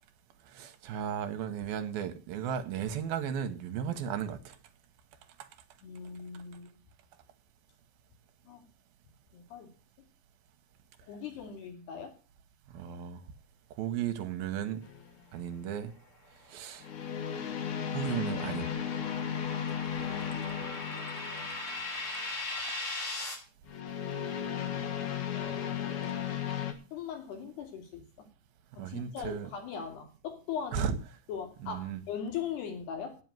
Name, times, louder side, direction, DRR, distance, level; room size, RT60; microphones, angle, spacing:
voice 1, 0.5-4.6 5.4-5.5 12.7-13.2 13.8-14.8 15.3-15.9 16.5-16.9 17.9-18.7 28.8-29.5 30.7-31.0 31.6-32.0, right 8 dB, 70° right, 2.8 m, -35 dB
voice 2, 5.8-6.7 8.5-8.6 9.3-9.7 11.1-12.1 20.0-21.5 25.3-26.3 26.9-28.3 28.8-30.9 31.3-33.2, left 7 dB, 80° left, 4.7 m, -40 dB
sound 1, 14.8-15.2 16.8-21.9 23.7-26.7, left 8 dB, 60° left, 2.3 m, -35 dB
sound 2, 16.5-23.3, left 2 dB, 35° left, 4.3 m, -40 dB
9.3 x 8.0 x 9.2 m
omnidirectional pair, 4.6 m